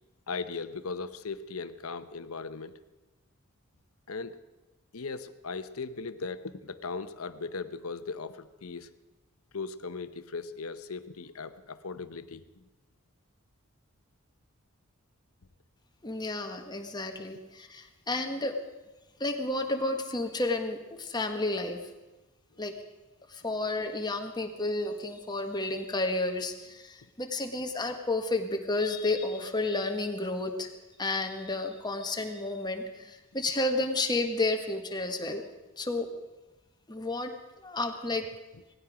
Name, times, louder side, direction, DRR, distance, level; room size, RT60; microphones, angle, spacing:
voice 1, 0.3-2.8 4.1-4.4 4.9-8.9 9.5-12.6, left 4 dB, 80° left, 12 dB, 0.9 m, -38 dB
voice 2, 16.0-18.6 19.2-21.9 22.6-22.8 23.3-30.7 31.0-35.4 35.8-36.1 36.9-37.3 37.6-38.3, left 2 dB, 20° left, 4 dB, 1.5 m, -31 dB
18.5 x 15.5 x 5.0 m, 1.1 s
head